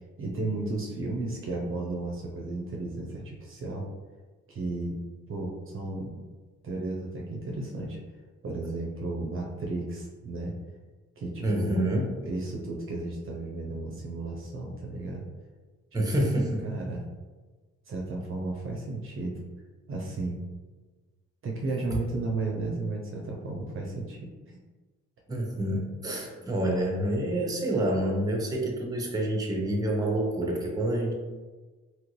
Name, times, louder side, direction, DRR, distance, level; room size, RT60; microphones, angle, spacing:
voice 1, 0.2-3.9 4.5-5.0 5.3-6.2 6.6-8.0 8.4-10.5 11.2-11.8 12.2-15.2 16.1-16.3 16.6-17.0 17.9-19.4 19.9-20.4 21.4-24.6, right 2 dB, 45° right, -1 dB, 0.6 m, -33 dB
voice 2, 11.4-12.1 15.9-16.7 25.3-31.1, right 1 dB, 10° right, 0 dB, 0.7 m, -27 dB
3.0 x 2.5 x 3.0 m, 1.3 s
cardioid pair, 90°, 30 cm